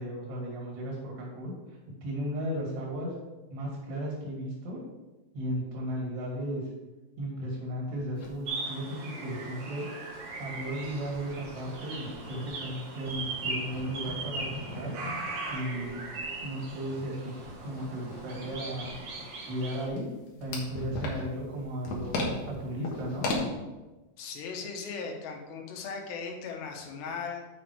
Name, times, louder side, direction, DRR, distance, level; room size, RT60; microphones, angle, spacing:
voice 1, 0.0-1.5 2.0-3.1 3.5-4.8 5.3-6.7 7.2-9.9 10.4-15.0 15.5-16.0 16.4-17.3 17.6-18.9 19.5-20.1 20.4-23.3, equal, 80° right, -2 dB, 4.6 m, -35 dB
sound 1, 8.2-8.3 8.7-8.8 9.0-9.1 9.7-12.8 13.1-23.4, left 2 dB, 60° left, 1.9 m, -39 dB
sound 2, 8.5-19.9, right 3 dB, 60° right, 1.6 m, -39 dB
voice 2, 24.2-27.5, left 5 dB, 80° left, 2 dB, 3.2 m, -38 dB
7.5 x 6.1 x 4.7 m, 1.1 s
omnidirectional pair, 4.8 m